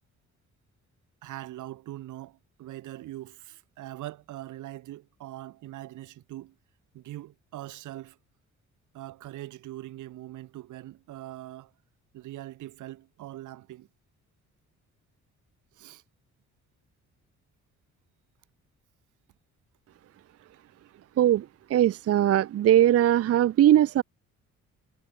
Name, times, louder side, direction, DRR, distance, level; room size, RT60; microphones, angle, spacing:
voice 1, 1.2-6.5 6.9-8.2 8.9-11.7 12.1-13.9 15.7-16.0 20.5-20.6, right 15 dB, 80° right, 1.5 m, -42 dB
voice 2, 21.2-24.0, right 12 dB, 50° right, 0.6 m, -20 dB
cardioid pair, 90°, 30 cm